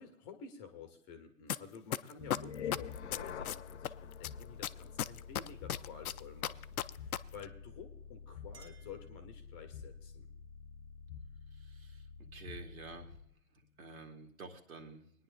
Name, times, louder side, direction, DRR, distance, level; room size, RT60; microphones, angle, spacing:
voice 1, 0.0-10.3, left 6 dB, 20° left, 6 dB, 0.9 m, -51 dB
sound 1, 1.5-1.6 1.9-3.9 4.2-7.2 7.4-7.5, left 11 dB, 70° left, 0.6 m, -34 dB
sound 2, 2.2-13.3, left 7 dB, 50° left, 0.9 m, -47 dB
Chink clink, 8.0-9.8, right 4 dB, 10° right, 1.6 m, -63 dB
voice 2, 11.5-12.1 12.3-13.1 13.8-15.0, right 3 dB, 70° right, 3 dB, 2.2 m, -50 dB
20.5 x 10.0 x 2.5 m, 0.72 s
hypercardioid pair, 140°, 44 cm